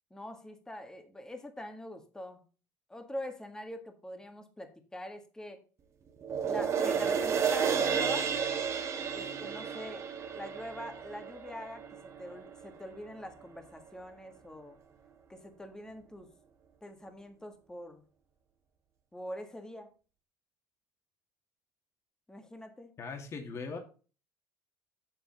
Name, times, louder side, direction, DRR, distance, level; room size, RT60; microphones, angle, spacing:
voice 1, 0.1-2.4 2.9-5.6 6.5-8.3 9.1-14.8 15.3-16.3 16.8-18.0 19.1-19.9 22.3-22.9, left 1 dB, 10° left, 1.7 m, -44 dB
sound 1, 6.2-12.8 13.2-13.3, right 7 dB, 40° right, 1.4 m, -32 dB
voice 2, 23.0-23.8, left 4 dB, 40° left, 2.1 m, -39 dB
7.8 x 7.5 x 4.0 m
supercardioid pair, 105°, 7 cm